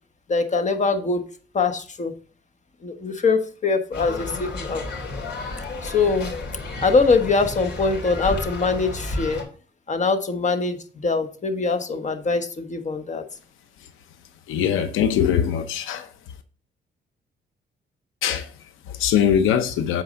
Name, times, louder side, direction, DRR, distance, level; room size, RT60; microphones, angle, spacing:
voice 1, 0.3-1.2 1.5-2.1 2.8-4.8 5.8-6.3 6.8-9.4 9.9-13.2, left 4 dB, 35° left, 1.3 m, -23 dB
sound 1, 3.9-9.4, left 2 dB, 65° left, 3.3 m, -32 dB
voice 2, 14.5-16.1 18.2-20.0, left 9 dB, 90° left, 0.8 m, -22 dB
8.1 x 4.7 x 5.1 m
cardioid pair, 90°, 20 cm